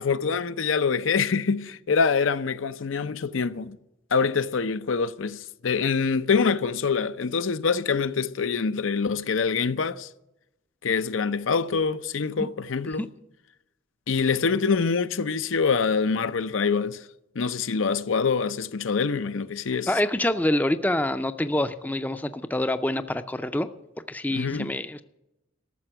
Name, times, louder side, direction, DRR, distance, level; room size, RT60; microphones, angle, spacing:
voice 1, 0.0-3.8 4.1-10.1 10.8-13.1 14.1-17.0 17.4-19.9 24.3-24.7, left 5 dB, 80° left, 0.6 m, -25 dB
voice 2, 19.9-23.7 24.1-25.0, left 1 dB, 10° left, 0.4 m, -26 dB
13.5 x 6.9 x 9.9 m
head